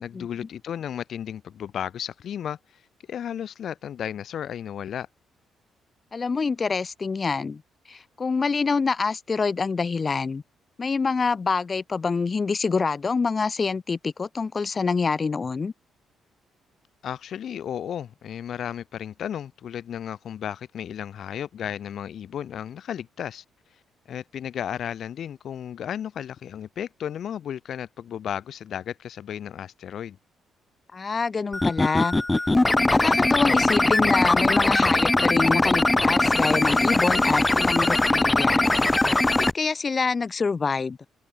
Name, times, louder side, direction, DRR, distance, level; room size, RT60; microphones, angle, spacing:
voice 1, 0.0-5.1 17.0-23.8 24.1-30.2, left 9 dB, 65° left, 2.9 m, -34 dB
voice 2, 6.1-7.6 7.9-10.4 10.8-15.7 30.9-32.1 32.9-38.6 39.2-41.0, left 4 dB, 35° left, 6.6 m, -26 dB
sound 1, 31.5-39.5, left 2 dB, 15° left, 1.2 m, -21 dB
cardioid pair, 90°, 0 cm